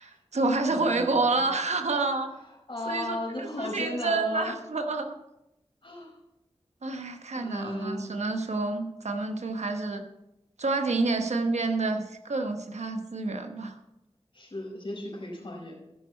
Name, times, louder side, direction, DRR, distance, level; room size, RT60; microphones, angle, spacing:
voice 1, 0.0-2.3 2.9-5.2 6.8-10.0 10.6-13.8, right 3 dB, 80° right, 6 dB, 1.0 m, -28 dB
voice 2, 0.7-1.4 2.7-4.6 5.8-6.2 7.1-8.1 14.3-15.7, left 1 dB, 50° left, -1 dB, 4.7 m, -36 dB
14.5 x 6.3 x 4.4 m, 0.88 s
cardioid pair, 45°, 11 cm